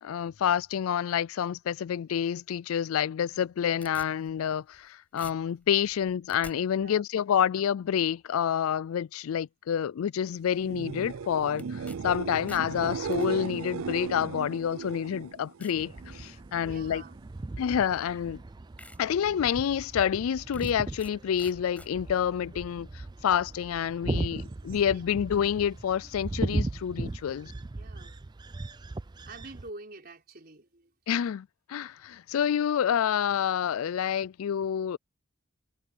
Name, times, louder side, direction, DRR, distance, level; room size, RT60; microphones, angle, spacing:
voice 1, 0.0-17.0 17.6-18.4 19.0-22.9 23.2-27.5 31.1-35.0, left 8 dB, 80° left, 0.4 m, -28 dB
sound 1, 3.3-4.9 5.2-6.6 11.6-12.0 12.3-13.3 14.2-14.3 14.9-15.0 15.6-15.8 16.3-16.7 17.8-17.9 18.4-18.5 18.8-19.0 19.4-19.5 20.5-21.1 21.4-21.9, left 2 dB, 5° left, 7.0 m, -49 dB
sound 2, 10.5-16.3 16.7-17.2 24.3-24.4, right 5 dB, 80° right, 0.5 m, -36 dB
sound 3, 15.8-29.7, right 2 dB, 20° right, 0.4 m, -38 dB
voice 2, 16.6-17.1 22.5-22.6 24.0-24.3 24.7-25.1 27.3-28.2 29.3-30.9, right 2 dB, 45° right, 4.6 m, -47 dB
head